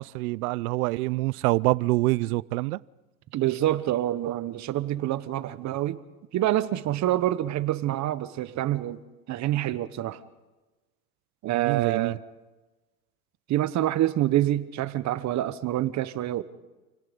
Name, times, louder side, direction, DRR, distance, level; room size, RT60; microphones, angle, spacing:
voice 1, 0.0-2.8 11.5-12.2, right 21 dB, 85° right, 0.7 m, -26 dB
voice 2, 3.3-6.0 6.3-9.0 9.3-10.2 11.4-12.2 13.5-16.4, right 13 dB, 40° right, 1.2 m, -26 dB
29.0 x 18.0 x 5.3 m
supercardioid pair, 130°, 43 cm